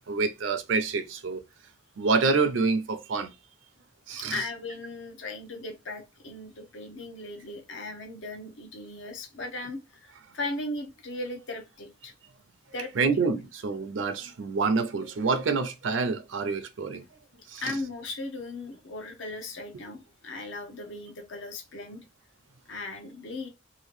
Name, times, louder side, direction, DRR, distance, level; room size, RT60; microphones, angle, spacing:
voice 1, 0.1-1.4 2.0-3.3 4.1-4.4 12.9-17.0 17.5-17.8, right 4 dB, 80° right, 0.5 m, -27 dB
voice 2, 4.2-12.1 12.7-13.1 17.6-22.0 22.7-23.5, left 2 dB, 75° left, 0.7 m, -37 dB
2.8 x 2.5 x 3.1 m
head